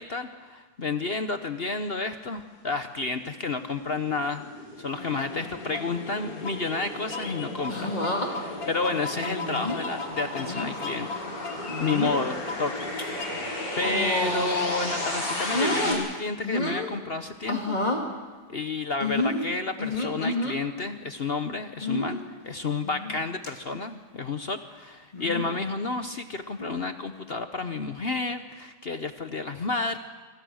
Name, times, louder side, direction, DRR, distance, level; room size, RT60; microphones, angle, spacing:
voice 1, 0.0-4.4 4.8-11.3 11.8-12.9 13.2-17.8 18.5-30.0, left 3 dB, 45° left, 8 dB, 1.0 m, -31 dB
sound 1, 2.7-15.9, left 1 dB, 80° left, 5.9 m, -36 dB
sound 2, 4.9-16.1, left 4 dB, 60° left, 2.3 m, -38 dB
sound 3, 7.7-8.3 9.2-9.8 10.4-10.7 11.7-12.2 12.8-13.0 13.8-14.7 15.0-16.0 16.4-16.9 17.5-18.0 19.0-20.6 21.8-22.2 22.8-23.2 23.4-23.5 25.1-25.5 26.6-26.9, left 2 dB, 25° left, 2.9 m, -29 dB
26.5 x 25.0 x 6.4 m, 1.4 s
omnidirectional pair, 1.7 m